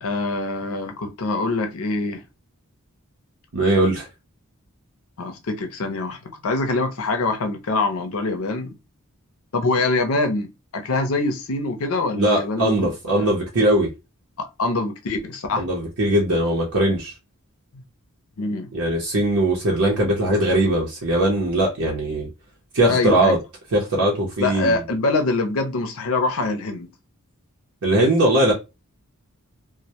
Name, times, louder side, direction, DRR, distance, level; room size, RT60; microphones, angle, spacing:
voice 1, 0.0-2.2 5.2-8.7 9.5-12.8 13.1-13.3 14.4-15.6 17.7-17.8 18.4-18.7 22.9-23.4 24.4-26.9, left 3 dB, 65° left, 0.5 m, -24 dB
voice 2, 3.5-4.1 12.2-13.9 15.6-17.1 18.7-22.3 22.7-23.4 23.7-24.8 27.8-28.5, right 1 dB, 70° right, 0.7 m, -20 dB
2.1 x 2.1 x 2.7 m
head